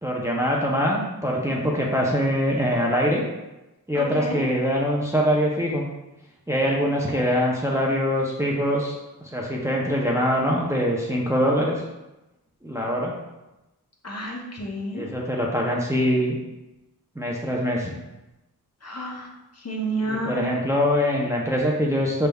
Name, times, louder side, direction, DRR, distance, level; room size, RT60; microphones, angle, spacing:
voice 1, 0.0-3.2 3.9-5.8 6.5-11.8 12.6-13.1 15.0-16.4 17.2-17.9 20.1-22.3, equal, 10° right, -2 dB, 0.6 m, -23 dB
voice 2, 3.9-4.4 14.0-15.1 18.8-20.6, right 1 dB, 40° left, -1 dB, 0.8 m, -30 dB
5.1 x 3.4 x 2.3 m, 0.99 s
wide cardioid pair, 80°, 39 cm